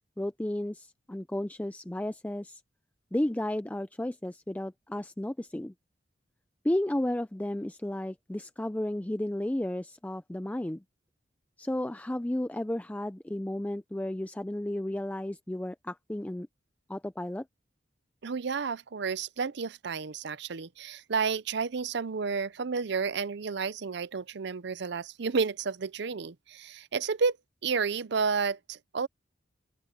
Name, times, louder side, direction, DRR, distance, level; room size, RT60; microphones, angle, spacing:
voice 1, 0.2-2.6 3.1-5.7 6.6-10.8 11.6-16.5 16.9-17.4, left 1 dB, 10° left, 0.4 m, -33 dB
voice 2, 18.2-27.4 27.6-29.1, right 5 dB, 65° right, 0.6 m, -31 dB
open air
head